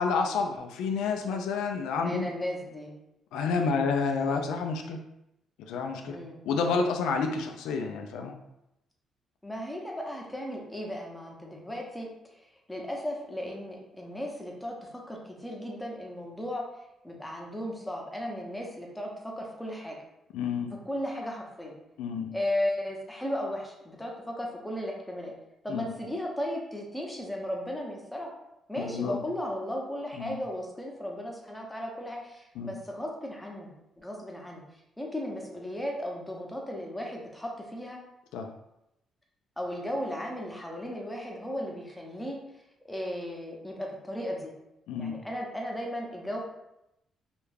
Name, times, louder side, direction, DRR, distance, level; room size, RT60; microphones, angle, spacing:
voice 1, 0.0-2.3 3.3-5.0 5.7-6.2 6.4-8.3 20.3-20.7 22.0-22.3 25.7-25.9 28.8-29.2 30.2-30.4 32.6-32.7 38.3-38.5 44.9-45.2, left 5 dB, 90° left, 4 dB, 0.3 m, -29 dB
voice 2, 2.0-2.9 3.6-3.8 6.1-6.4 9.4-12.1 12.7-16.6 17.0-20.0 20.8-21.7 22.3-25.3 25.6-28.3 28.7-33.7 34.0-34.6 35.0-38.0 39.6-42.4 42.8-44.5 45.0-46.4, left 1 dB, 10° left, 0 dB, 0.6 m, -35 dB
2.3 x 2.1 x 3.2 m, 0.86 s
cardioid pair, 90°, 0 cm